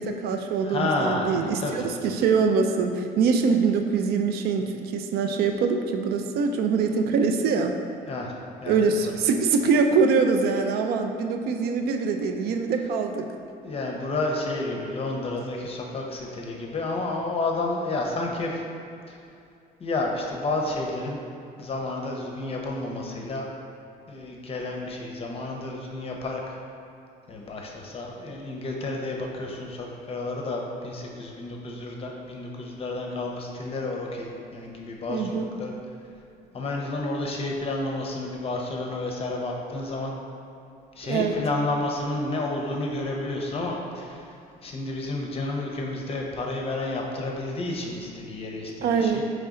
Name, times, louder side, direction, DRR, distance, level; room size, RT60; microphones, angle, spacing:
voice 1, 0.0-7.8 8.7-13.3 35.1-35.6 41.0-41.4 48.8-49.2, right 5 dB, 70° right, 5 dB, 0.4 m, -24 dB
voice 2, 0.6-1.9 8.1-8.3 8.6-8.8 13.6-18.6 19.8-21.2 21.6-23.5 24.1-26.6 27.3-35.7 36.5-40.1 41.0-44.2 44.6-49.2, left 2 dB, 35° left, 0 dB, 0.6 m, -30 dB
3.9 x 3.2 x 3.6 m, 2.5 s
cardioid pair, 110°, 17 cm